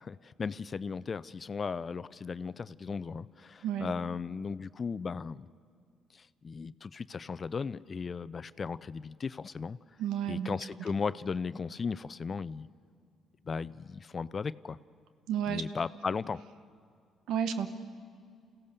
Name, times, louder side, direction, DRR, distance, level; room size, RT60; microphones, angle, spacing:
voice 1, 0.0-5.5 6.2-9.8 10.3-12.7 13.5-14.8 15.5-16.4, left 5 dB, 45° left, 18 dB, 0.5 m, -36 dB
voice 2, 10.0-10.6 15.3-15.6 17.3-17.7, right 9 dB, 75° right, 10 dB, 1.2 m, -31 dB
28.5 x 15.5 x 6.9 m, 2.2 s
hypercardioid pair, 50°, 0 cm